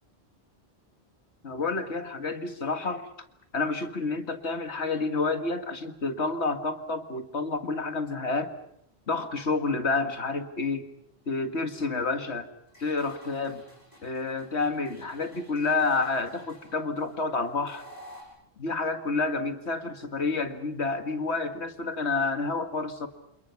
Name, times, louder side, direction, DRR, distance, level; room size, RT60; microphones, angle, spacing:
voice 1, 1.4-3.1 3.5-8.5 9.1-10.9 11.3-12.5 12.8-13.6 14.0-17.9 18.6-23.1, left 3 dB, 85° left, 7 dB, 2.1 m, -29 dB
sound 1, 12.7-18.2, equal, 35° left, 7.2 m, -52 dB
28.0 x 28.0 x 5.9 m, 0.77 s
omnidirectional pair, 1.1 m